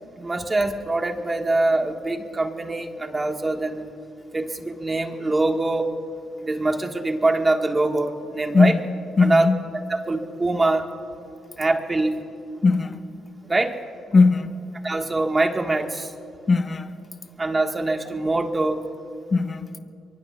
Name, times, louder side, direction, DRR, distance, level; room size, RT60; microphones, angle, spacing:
voice 1, 0.2-3.9 4.3-5.9 6.4-8.7 9.2-9.5 9.9-10.8 11.6-12.2 13.5-13.8 14.8-16.1 17.4-18.8, right 2 dB, 25° right, 1.5 m, -23 dB
voice 2, 9.2-9.6 12.6-13.1 14.1-14.6 16.5-16.9 19.3-19.7, left 4 dB, 35° left, 1.0 m, -19 dB
23.5 x 23.5 x 2.3 m
cardioid pair, 90°, 0 cm